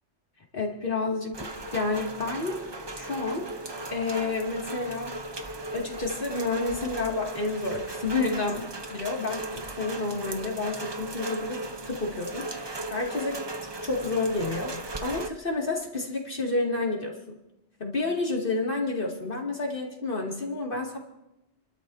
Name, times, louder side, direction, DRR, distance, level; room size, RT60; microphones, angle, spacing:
voice 1, 0.5-2.6 2.9-3.5 3.9-5.1 5.7-11.6 11.9-14.7 15.0-17.1 17.8-21.0, left 3 dB, 50° left, -1 dB, 2.6 m, -30 dB
Rain, 1.3-15.3, right 2 dB, 25° right, 0.7 m, -37 dB
29.5 x 12.5 x 2.8 m, 0.93 s
omnidirectional pair, 1.2 m